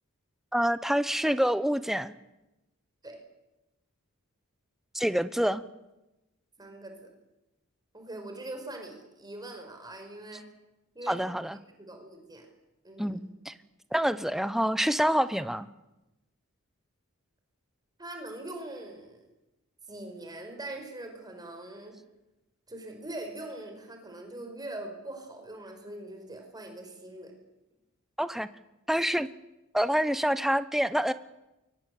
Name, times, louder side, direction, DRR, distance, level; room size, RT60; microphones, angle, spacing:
voice 1, 0.5-2.1 4.9-5.6 11.1-11.6 13.0-13.5 13.9-15.7 28.2-28.5 28.9-29.3 29.7-31.1, equal, ahead, 13 dB, 0.8 m, -27 dB
voice 2, 6.6-7.1 7.9-10.4 10.9-11.3 11.6-12.5 12.8-13.2 18.0-19.2 19.9-21.9 22.7-27.3, right 1 dB, 20° right, 4 dB, 5.2 m, -42 dB
24.0 x 22.5 x 8.5 m, 0.99 s
head